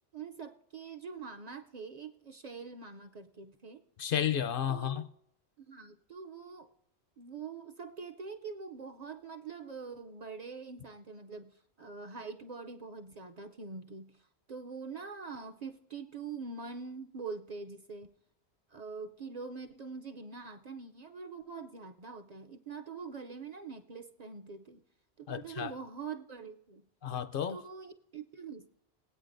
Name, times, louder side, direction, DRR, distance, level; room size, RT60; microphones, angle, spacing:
voice 1, 0.1-3.8 4.7-5.0 5.7-6.7 7.2-14.2 14.5-18.1 18.7-24.8 25.2-26.8 27.5-28.7, right 5 dB, 50° right, 0.6 m, -44 dB
voice 2, 4.0-5.1 25.3-25.7 27.0-27.6, left 9 dB, 65° left, 0.7 m, -32 dB
21.0 x 8.5 x 2.6 m
omnidirectional pair, 1.1 m